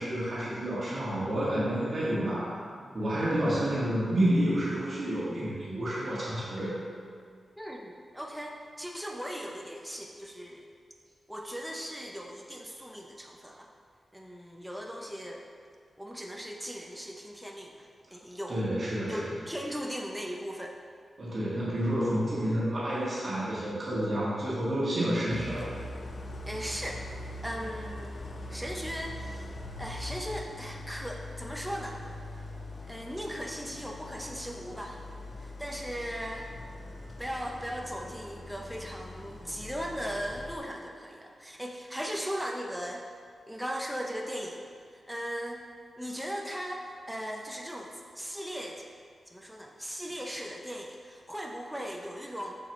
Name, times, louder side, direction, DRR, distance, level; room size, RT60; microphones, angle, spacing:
voice 1, 0.0-2.6 2.9-6.7 18.5-19.3 21.2-25.7, right 1 dB, 45° right, -8 dB, 1.7 m, -29 dB
voice 2, 7.6-10.7 11.3-13.7 14.1-15.5 16.0-18.6 19.1-20.7 26.5-28.2 28.5-29.5 29.8-32.0 32.9-35.0 35.4-36.5 37.2-43.0 43.5-44.6 44.9-45.6 46.0-48.8 49.3-52.6, equal, ahead, 0 dB, 0.5 m, -38 dB
Idling, 25.3-40.6, left 2 dB, 45° left, 0.6 m, -42 dB
7.1 x 6.7 x 3.0 m, 2.1 s
wide cardioid pair, 110°, 0 cm